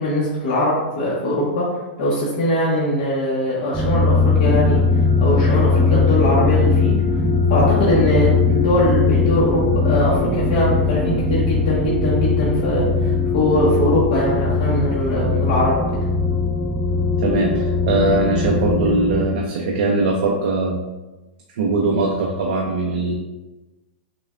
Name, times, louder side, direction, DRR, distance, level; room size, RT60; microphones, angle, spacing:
voice 1, 0.0-1.7 2.0-6.9 7.5-15.8, left 1 dB, 45° left, -7 dB, 0.9 m, -21 dB
sound 1, 3.7-19.2, left 4 dB, 5° right, 0.4 m, -19 dB
voice 2, 17.2-20.8 21.5-23.2, right 2 dB, 60° right, 0 dB, 0.5 m, -20 dB
6.5 x 2.2 x 2.4 m, 1.1 s
supercardioid pair, 165°, 6 cm